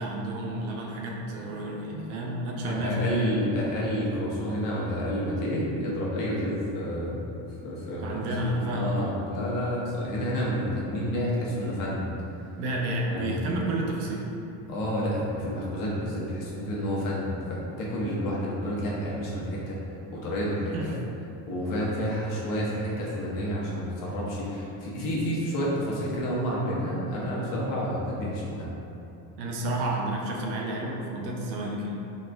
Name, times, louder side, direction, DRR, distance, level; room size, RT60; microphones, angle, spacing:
voice 1, 0.0-3.3 8.0-9.2 12.6-14.3 20.7-21.0 29.4-32.0, right 1 dB, 75° right, -1 dB, 0.7 m, -30 dB
voice 2, 2.6-7.2 7.6-8.2 8.5-12.1 13.1-13.4 14.7-19.8 20.1-20.7 21.5-28.7, equal, 55° left, -5 dB, 0.9 m, -29 dB
3.9 x 2.4 x 2.3 m, 2.8 s
cardioid pair, 120°, 40 cm